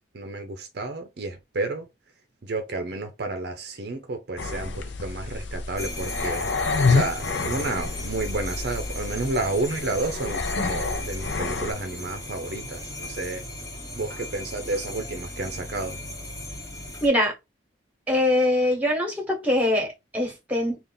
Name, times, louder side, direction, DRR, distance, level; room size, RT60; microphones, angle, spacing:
voice 1, 0.1-1.9 2.4-13.4 14.0-16.0, right 2 dB, 55° right, 0.6 m, -31 dB
sound 1, 4.4-11.7, left 4 dB, 65° left, 0.6 m, -28 dB
sound 2, 5.8-17.1, left 1 dB, 15° left, 1.0 m, -37 dB
voice 2, 17.0-17.3 18.1-20.8, left 1 dB, 10° right, 1.2 m, -23 dB
3.5 x 2.4 x 3.9 m
head